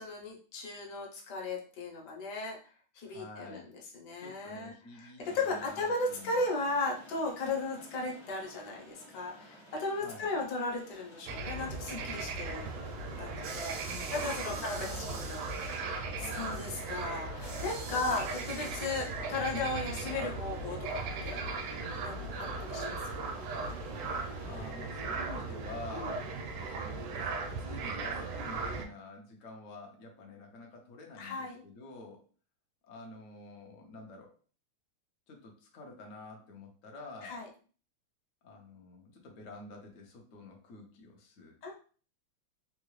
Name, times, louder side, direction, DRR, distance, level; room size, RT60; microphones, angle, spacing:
voice 1, 0.0-2.6 2.9-3.6 3.9-12.6 13.2-13.8 14.1-21.4 22.0-23.4 25.9-26.1 31.2-31.6 37.2-37.5 41.6-41.7, left 3 dB, 60° left, -1 dB, 1.2 m, -36 dB
voice 2, 3.0-3.7 4.2-6.5 10.0-10.3 13.8-15.2 16.1-16.6 24.5-26.3 26.7-32.2 32.8-34.3 35.3-37.5 38.4-41.5, left 2 dB, 85° left, 1 dB, 0.7 m, -48 dB
sound 1, 5.2-24.7, equal, 40° left, 0.4 m, -55 dB
sound 2, 11.3-28.9, right 3 dB, 85° right, 1.5 m, -38 dB
sound 3, 13.4-19.4, right 4 dB, 70° right, 0.9 m, -46 dB
3.7 x 2.3 x 3.1 m, 0.40 s
omnidirectional pair, 2.4 m